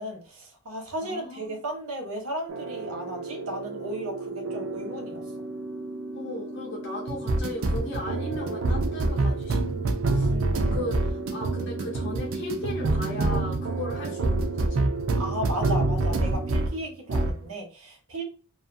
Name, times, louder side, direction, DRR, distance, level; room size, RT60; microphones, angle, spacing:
voice 1, 0.0-5.2 10.3-10.8 15.2-18.2, equal, 80° right, 1.0 m, -35 dB
voice 2, 1.0-1.6 6.1-10.3 10.7-14.9, left 2 dB, 55° left, 0.6 m, -37 dB
sound 1, 2.5-16.8 17.1-17.4, right 2 dB, 65° right, 0.4 m, -27 dB
2.5 x 2.4 x 2.5 m
head